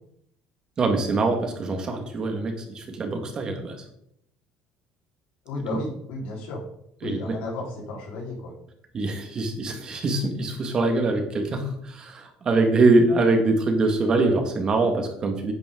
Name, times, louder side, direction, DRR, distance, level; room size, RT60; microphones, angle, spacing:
voice 1, 0.8-3.8 7.0-7.4 8.9-15.5, right 2 dB, 30° right, 4 dB, 1.9 m, -23 dB
voice 2, 5.4-6.6 7.0-8.5, left 2 dB, 80° left, -2 dB, 4.4 m, -33 dB
11.0 x 8.7 x 3.9 m, 0.73 s
cardioid pair, 150°, 3 cm